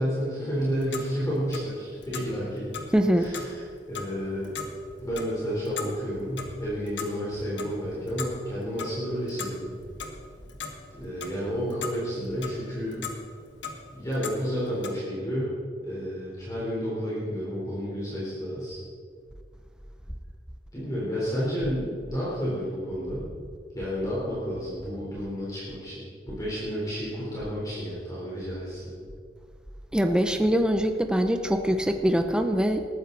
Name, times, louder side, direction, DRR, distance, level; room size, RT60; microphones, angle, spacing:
voice 1, 0.0-2.7 3.1-4.6 5.0-9.7 10.9-13.1 13.9-15.5 15.8-18.8 20.7-23.3 23.7-28.9, equal, 20° left, -7 dB, 4.0 m, -31 dB
Clock, 0.5-14.9, left 5 dB, 80° left, 1.7 m, -41 dB
voice 2, 2.9-3.3 29.9-32.9, equal, 5° right, 6 dB, 0.6 m, -23 dB
20.5 x 14.0 x 4.1 m, 2.2 s
head